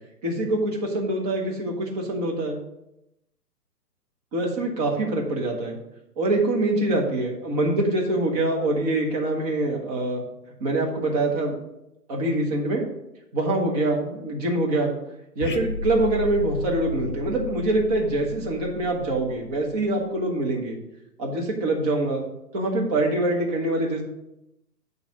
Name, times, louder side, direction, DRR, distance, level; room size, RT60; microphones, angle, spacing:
voice 1, 0.2-2.6 4.3-5.8 6.2-10.2 10.6-11.5 12.1-12.8 13.3-14.9 15.3-20.8 21.2-22.2 22.5-24.0, right 2 dB, 25° right, -1 dB, 1.4 m, -24 dB
sound 1, 15.4-20.0, left 4 dB, 35° left, 0.5 m, -33 dB
9.0 x 3.5 x 5.9 m, 0.86 s
figure-of-eight pair, 135°, 49 cm